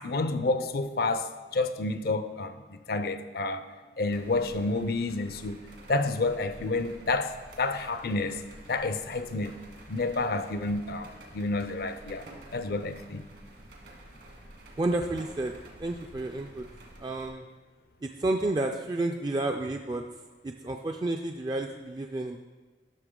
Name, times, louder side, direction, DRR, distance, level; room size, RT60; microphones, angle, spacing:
voice 1, 0.0-3.7 4.0-5.6 5.9-8.4 8.7-9.5 9.9-12.3 12.5-13.2, left 3 dB, 60° left, 10 dB, 0.5 m, -29 dB
sound 1, 4.1-17.3, right 1 dB, 70° right, 1.7 m, -50 dB
voice 2, 14.8-15.5 15.8-16.7 17.0-17.4 18.0-20.0 20.4-22.4, right 2 dB, 25° right, 4 dB, 0.3 m, -30 dB
12.0 x 6.3 x 3.7 m, 1.3 s
head